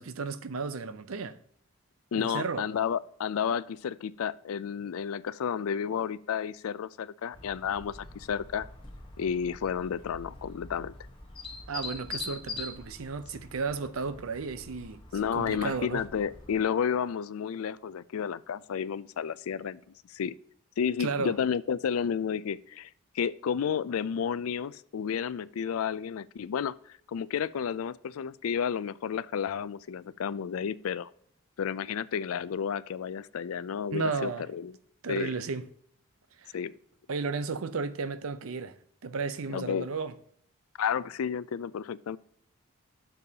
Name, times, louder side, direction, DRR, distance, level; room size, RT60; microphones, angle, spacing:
voice 1, 0.0-1.4 2.1-2.6 11.7-15.0 15.3-16.0 21.0-21.4 33.9-34.4 35.0-35.7 36.4-36.6 37.1-38.8 39.0-40.1, right 4 dB, 80° right, 0.6 m, -33 dB
voice 2, 2.1-8.7 9.2-10.9 15.1-19.8 20.1-20.3 20.8-22.9 23.1-31.1 31.6-34.7 35.1-35.3 36.5-36.7 39.5-39.9 40.8-42.2, left 7 dB, 85° left, 0.4 m, -31 dB
sound 1, 7.3-16.6, left 3 dB, 25° left, 1.2 m, -44 dB
12.0 x 7.0 x 2.8 m
head